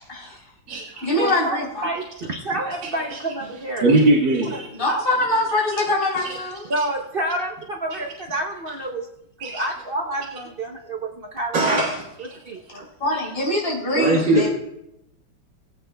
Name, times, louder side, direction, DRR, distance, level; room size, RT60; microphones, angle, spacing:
voice 1, 0.1-0.5 0.9-1.9 4.7-6.7 13.0-14.5, left 1 dB, 30° left, -6 dB, 3.5 m, -23 dB
voice 2, 1.2-3.9 4.5-4.6 4.9-5.0 6.7-9.1 9.4-11.9 12.4-12.8, right 1 dB, 50° right, 1 dB, 0.7 m, -28 dB
voice 3, 3.8-4.7 6.8-6.9 9.4-9.6 11.5-12.0 14.0-14.5, right 2 dB, 75° right, -5 dB, 2.4 m, -19 dB
20.5 x 8.2 x 2.3 m, 0.80 s
omnidirectional pair, 2.1 m